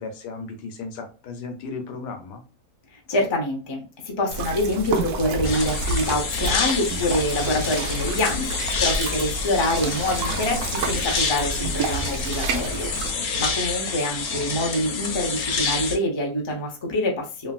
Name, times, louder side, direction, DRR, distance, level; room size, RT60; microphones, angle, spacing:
voice 1, 0.0-2.4 13.1-13.6, left 4 dB, 85° left, 6 dB, 1.3 m, -36 dB
voice 2, 3.1-17.5, left 1 dB, 45° left, 1 dB, 0.3 m, -26 dB
sound 1, 4.3-13.1, right 3 dB, 70° right, 1.0 m, -29 dB
sound 2, 5.4-16.0, left 5 dB, 65° left, 1.1 m, -28 dB
3.1 x 2.6 x 2.3 m, 0.34 s
omnidirectional pair, 1.8 m